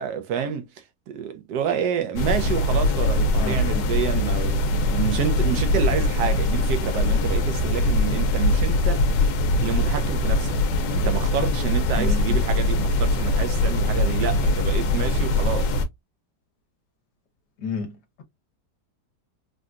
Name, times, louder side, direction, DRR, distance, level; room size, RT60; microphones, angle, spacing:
voice 1, 0.0-9.3 9.6-10.6 10.9-15.7, right 8 dB, 75° right, 1.2 m, -29 dB
sound 1, 2.2-15.9, left 2 dB, 90° left, 1.3 m, -22 dB
voice 2, 3.4-3.9 11.9-12.4 17.6-18.2, left 3 dB, 70° left, 1.4 m, -31 dB
3.8 x 2.2 x 2.4 m
omnidirectional pair, 1.9 m